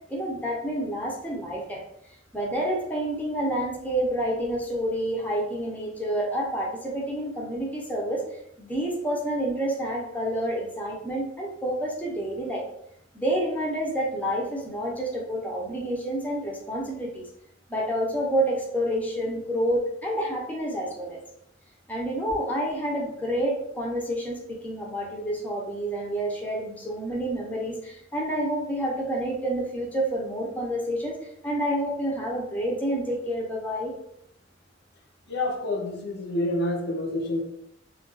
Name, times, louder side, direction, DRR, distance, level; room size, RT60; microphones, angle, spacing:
voice 1, 0.1-1.8 2.3-8.2 8.6-12.6 13.1-17.3 17.7-21.2 21.9-33.9, right 1 dB, 10° left, -3 dB, 0.5 m, -28 dB
voice 2, 35.3-37.4, left 1 dB, 55° left, 0 dB, 0.5 m, -28 dB
2.3 x 2.2 x 3.8 m, 0.75 s
head